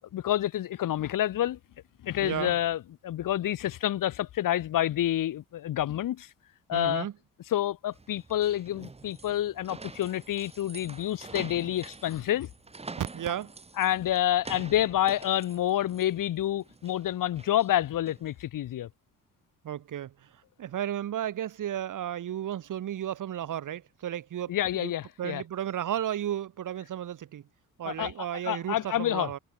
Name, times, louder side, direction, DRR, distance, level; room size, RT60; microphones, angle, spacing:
voice 1, 0.1-1.6 2.0-6.3 6.7-7.1 7.5-12.5 13.8-18.9 24.5-25.4 27.8-29.3, left 12 dB, 70° left, 1.5 m, -28 dB
voice 2, 2.2-2.6 6.7-7.1 13.0-13.5 19.6-24.9 25.2-27.5 27.8-29.4, right 11 dB, 60° right, 1.9 m, -33 dB
sound 1, 7.9-18.3, right 3 dB, 20° right, 1.2 m, -47 dB
open air
supercardioid pair, 70°, 35 cm